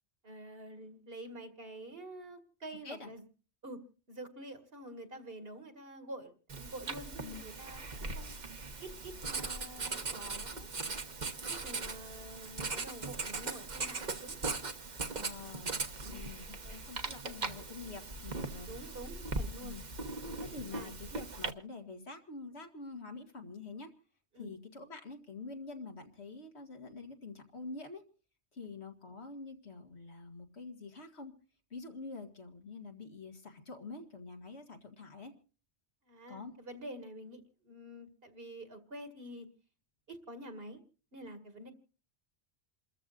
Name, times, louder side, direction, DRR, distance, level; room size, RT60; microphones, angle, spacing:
voice 1, 0.2-3.2 3.6-3.8 4.1-8.3 8.8-10.7 11.5-14.4 16.0-16.6 18.7-19.8 20.7-21.0 24.3-24.5 36.1-39.5 40.1-40.8 41.1-41.7, right 1 dB, 60° right, 7 dB, 2.3 m, -48 dB
Writing, 6.5-21.5, right 3 dB, 45° right, 1.2 m, -39 dB
voice 2, 15.1-15.8 16.1-18.7 19.6-19.8 20.4-23.9 24.4-28.0 28.5-31.3 31.7-35.3 36.3-36.5, left 3 dB, 80° left, 3 dB, 2.3 m, -46 dB
28.5 x 14.0 x 2.5 m, 0.37 s
omnidirectional pair, 1.1 m